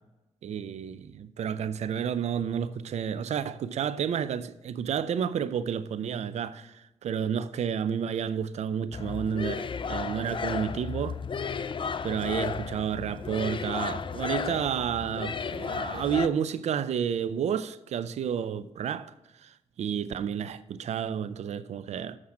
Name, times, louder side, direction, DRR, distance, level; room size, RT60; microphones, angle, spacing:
voice 1, 0.4-11.2 12.0-22.2, right 8 dB, 75° right, 0.5 m, -31 dB
sound 1, 8.9-16.3, left 6 dB, 45° left, 0.5 m, -34 dB
7.3 x 6.4 x 6.0 m
supercardioid pair, 45°, 12 cm